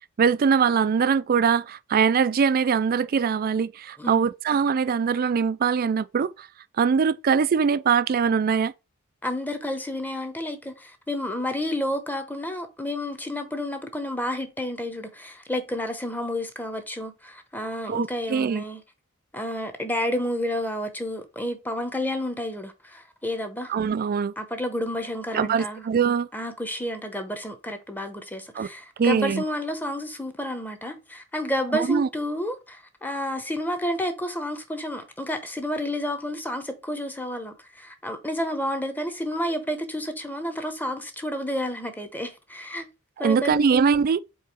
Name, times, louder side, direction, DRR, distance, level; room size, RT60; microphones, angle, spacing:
voice 1, 0.2-6.5 6.8-8.7 17.9-18.6 23.7-24.3 25.3-26.3 28.5-28.7 29.0-29.4 31.7-32.1 43.2-44.2, right 6 dB, 45° right, 0.3 m, -22 dB
voice 2, 4.0-4.3 9.2-18.8 19.3-23.7 24.4-25.9 26.3-42.9 43.2-43.6, left 1 dB, 10° left, 0.8 m, -30 dB
4.7 x 3.8 x 5.3 m
head